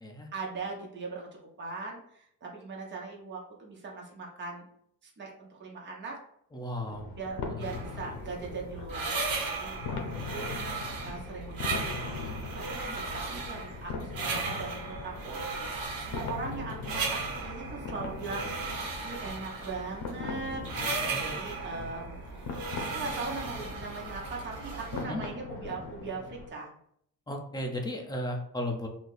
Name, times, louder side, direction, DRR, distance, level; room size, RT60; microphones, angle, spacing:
voice 1, 0.3-1.3 1.6-4.7 5.0-6.2 7.2-22.5 22.9-26.7, right 3 dB, 30° right, -2 dB, 0.8 m, -40 dB
voice 2, 6.5-7.1 7.5-7.8 9.8-10.2 21.1-21.4 25.1-25.2 27.3-28.9, left 1 dB, 10° left, 1 dB, 0.3 m, -35 dB
sound 1, 6.8-26.5, left 4 dB, 65° left, 0.7 m, -41 dB
sound 2, 7.6-25.0, right 4 dB, 60° right, 0.9 m, -36 dB
2.8 x 2.5 x 3.9 m, 0.69 s
cardioid pair, 155°, 40 cm